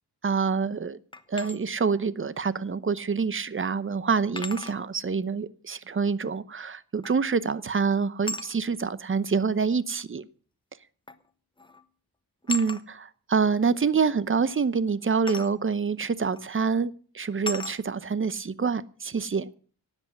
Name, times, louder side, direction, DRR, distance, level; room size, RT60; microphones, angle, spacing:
voice 1, 0.2-1.0 1.3-10.3 12.5-19.5, right 5 dB, 30° right, 0.8 m, -26 dB
sound 1, 1.1-1.6 3.1-3.2 4.4-4.8 7.0-7.3 8.2-8.5 9.7-9.8 11.1-11.3 11.6-11.8 12.5-12.8 15.3-15.5 16.3-16.5 17.5-17.8, left 2 dB, 15° left, 1.1 m, -35 dB
18.0 x 8.1 x 7.3 m
wide cardioid pair, 135°, 39 cm